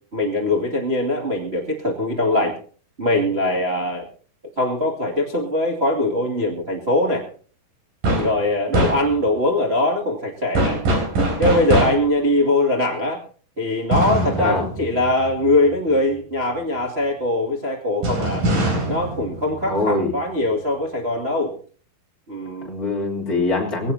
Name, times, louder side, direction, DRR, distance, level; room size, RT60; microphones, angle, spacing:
voice 1, 0.1-2.5 3.0-4.1 4.6-7.3 8.1-10.8 11.4-13.2 13.6-18.5 18.9-21.5 22.3-22.7, left 1 dB, 80° right, -2 dB, 0.5 m, -21 dB
sound 1, 8.0-8.4 8.7-9.4 10.6-12.2 13.9-15.7 18.0-20.2, right 1 dB, 45° right, 4.8 m, -23 dB
voice 2, 19.6-20.1 22.7-23.9, left 2 dB, 20° left, -1 dB, 2.8 m, -23 dB
21.0 x 17.0 x 2.8 m, 0.42 s
omnidirectional pair, 5.8 m